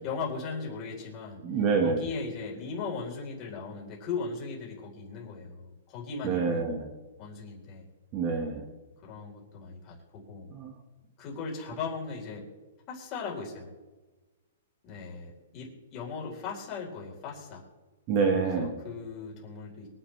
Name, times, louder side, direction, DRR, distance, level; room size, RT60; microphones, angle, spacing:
voice 1, 0.0-1.4 1.8-6.7 7.2-7.8 9.0-10.5 11.2-12.4 12.9-13.7 14.8-17.6 18.5-19.9, left 5 dB, 25° left, -3 dB, 4.1 m, -38 dB
voice 2, 1.4-2.1 6.2-6.9 8.1-8.6 10.5-10.7 18.1-18.7, right 5 dB, 30° right, 4 dB, 1.5 m, -27 dB
23.5 x 10.0 x 3.4 m, 1.2 s
hypercardioid pair, 165°, 0 cm